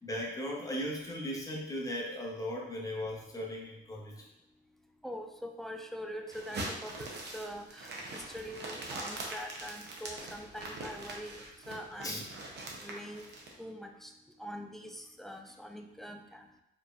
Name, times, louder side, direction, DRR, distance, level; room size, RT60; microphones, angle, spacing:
voice 1, 0.0-4.2 12.0-12.2, equal, 15° left, -2 dB, 1.1 m, -37 dB
voice 2, 5.0-12.2 12.8-13.3 13.6-14.1 14.4-16.4, equal, ahead, 4 dB, 0.4 m, -44 dB
sound 1, 6.3-13.5, right 2 dB, 60° right, 0.9 m, -42 dB
4.4 x 3.3 x 2.5 m, 0.86 s
cardioid pair, 90°, 20 cm